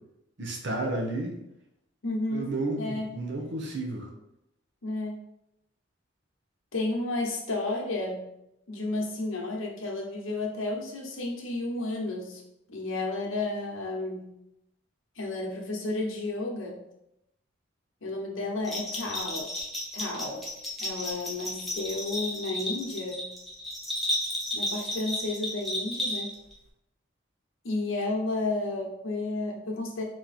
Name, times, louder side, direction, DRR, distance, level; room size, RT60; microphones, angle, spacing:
voice 1, 0.4-1.4 2.3-4.1, right 2 dB, 60° right, 1 dB, 0.9 m, -32 dB
voice 2, 2.0-3.1 4.8-5.2 6.7-8.3 8.7-12.4 12.7-14.3 15.2-16.8 18.0-19.5 19.9-20.4 20.8-23.3 24.5-26.3 27.6-30.0, left 2 dB, 80° left, 0 dB, 1.0 m, -32 dB
Bell, 18.6-26.5, left 1 dB, ahead, 1.1 m, -33 dB
4.1 x 3.1 x 4.1 m, 0.84 s
head